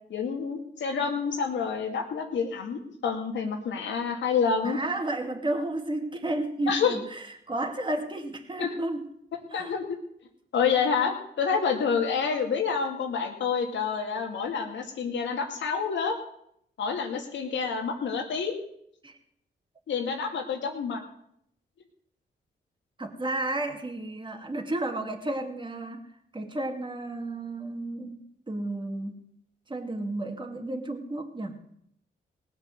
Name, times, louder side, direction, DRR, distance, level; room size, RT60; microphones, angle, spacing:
voice 1, 0.1-4.8 6.7-6.9 8.6-8.7 9.5-10.0 10.5-16.2 16.8-18.6 19.9-21.0, left 6 dB, 90° left, 3 dB, 2.4 m, -28 dB
voice 2, 4.6-9.1 9.5-9.7 19.0-19.2 20.0-20.1 23.0-26.0 26.3-29.2 29.7-31.8, right 2 dB, 25° right, 3 dB, 2.3 m, -32 dB
19.0 x 7.4 x 7.6 m, 0.72 s
cardioid pair, 70°, 19 cm